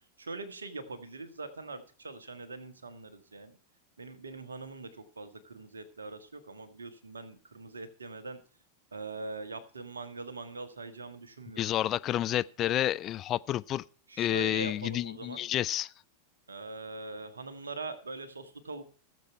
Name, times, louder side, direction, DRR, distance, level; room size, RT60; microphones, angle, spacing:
voice 1, 0.2-3.6 4.0-8.4 8.9-11.7 14.1-15.4 16.5-18.8, right 3 dB, 75° right, 1.7 m, -42 dB
voice 2, 11.6-13.8 14.2-15.9, left 12 dB, 30° left, 0.5 m, -30 dB
17.0 x 7.6 x 4.5 m
figure-of-eight pair, 90°, 0 cm